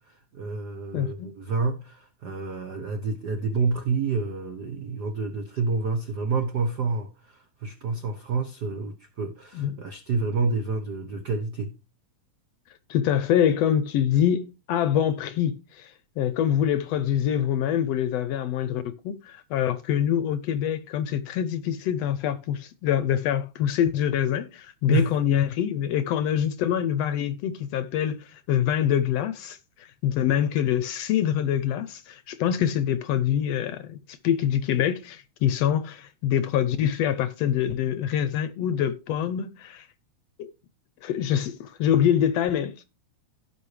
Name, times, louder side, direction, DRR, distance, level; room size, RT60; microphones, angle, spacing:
voice 1, 0.1-11.7 24.9-25.1, right 4 dB, 70° right, 0.9 m, -29 dB
voice 2, 0.9-1.3 9.5-9.7 12.9-39.9 40.4-40.5 41.0-42.7, left 9 dB, 75° left, 1.6 m, -25 dB
16.5 x 5.6 x 3.2 m
omnidirectional pair, 3.3 m